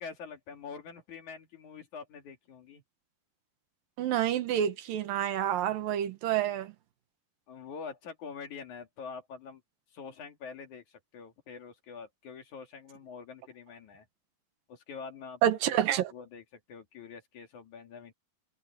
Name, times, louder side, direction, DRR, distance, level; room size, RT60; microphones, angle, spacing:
voice 1, 0.0-2.8 7.5-9.6 9.9-14.1 14.7-15.4 16.1-18.1, left 5 dB, 60° left, 3.7 m, -45 dB
voice 2, 4.0-6.7 15.4-16.1, right 11 dB, 75° right, 3.0 m, -28 dB
omnidirectional pair, 4.1 m